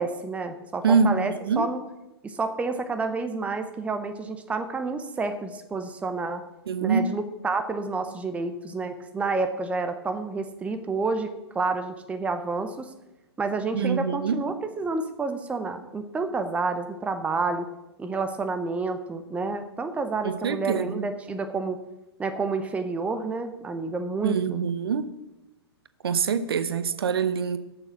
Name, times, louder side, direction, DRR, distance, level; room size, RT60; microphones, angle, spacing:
voice 1, 0.0-1.8 2.2-6.4 6.8-11.3 11.5-12.9 13.4-17.7 18.0-21.8 22.2-24.6, right 3 dB, 10° right, 0.8 m, -29 dB
voice 2, 0.8-1.7 6.7-7.1 13.7-14.4 20.2-21.1 24.2-25.1 26.0-27.6, right 5 dB, 65° right, 0.9 m, -25 dB
12.0 x 6.9 x 6.1 m
figure-of-eight pair, 115°, 14 cm